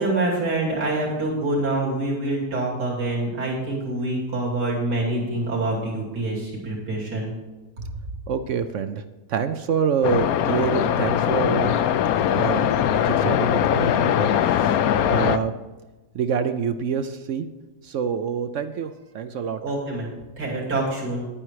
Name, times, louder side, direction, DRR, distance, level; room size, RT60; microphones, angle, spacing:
voice 1, 0.0-7.3 7.9-8.0 19.6-20.1 20.4-21.2, right 2 dB, 80° right, -4 dB, 3.4 m, -26 dB
voice 2, 8.3-9.0 9.3-11.8 12.1-12.7 13.0-14.8 15.1-15.5 16.1-17.5 17.8-19.6, right 7 dB, 65° right, 10 dB, 0.8 m, -26 dB
sound 1, 10.0-15.4, left 9 dB, 70° left, 1.0 m, -21 dB
11.0 x 9.0 x 4.7 m, 1.2 s
omnidirectional pair, 1.7 m